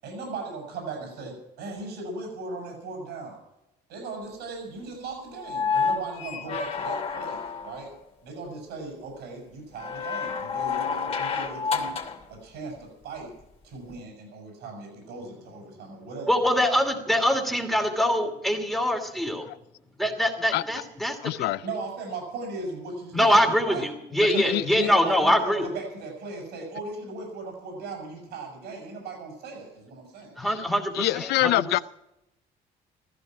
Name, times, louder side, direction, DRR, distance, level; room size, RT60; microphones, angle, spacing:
voice 1, 0.0-3.4 3.9-7.9 8.2-11.9 12.3-13.3 13.6-16.3 21.6-23.9 24.1-30.3, right 3 dB, 80° right, 1 dB, 7.3 m, -37 dB
sound 1, 5.4-7.9 9.8-12.2 13.9-14.0, left 5 dB, 35° left, 2.9 m, -29 dB
voice 2, 16.3-19.5 20.0-21.5 23.1-25.7 30.4-31.8, equal, ahead, 2 dB, 2.6 m, -24 dB
voice 3, 21.2-21.6 24.2-24.9 30.9-31.8, left 17 dB, 80° left, 17 dB, 0.5 m, -25 dB
15.0 x 15.0 x 6.1 m, 0.88 s
cardioid pair, 110°, 17 cm